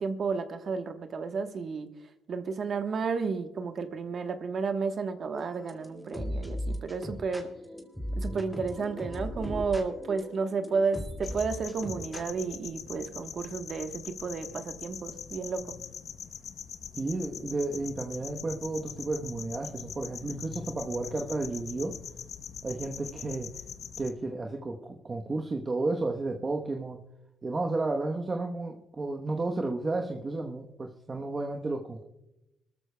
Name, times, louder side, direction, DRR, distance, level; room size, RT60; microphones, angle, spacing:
voice 1, 0.0-1.9 2.3-7.5 8.2-15.8, right 5 dB, 50° right, 1.2 m, -32 dB
sound 1, 5.3-12.5, equal, ahead, 2.2 m, -38 dB
sound 2, 11.2-24.1, left 7 dB, 60° left, 0.8 m, -42 dB
voice 2, 17.0-22.0 22.6-23.6 24.0-27.0 27.4-32.0, right 2 dB, 30° right, 1.0 m, -32 dB
23.5 x 13.5 x 2.2 m
cardioid pair, 90°, 0 cm